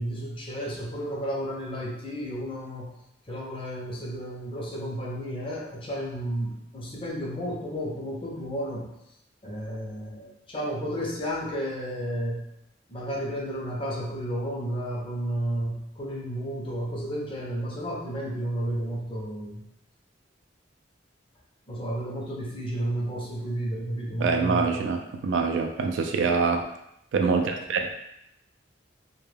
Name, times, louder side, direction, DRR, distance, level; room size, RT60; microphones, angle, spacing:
voice 1, 0.0-2.9 3.3-8.9 9.4-12.4 12.9-19.6 21.7-24.7, equal, 30° left, -3 dB, 0.5 m, -32 dB
voice 2, 24.2-26.6 27.1-28.0, right 4 dB, 75° right, 4 dB, 0.3 m, -25 dB
2.2 x 2.1 x 3.2 m, 0.80 s
head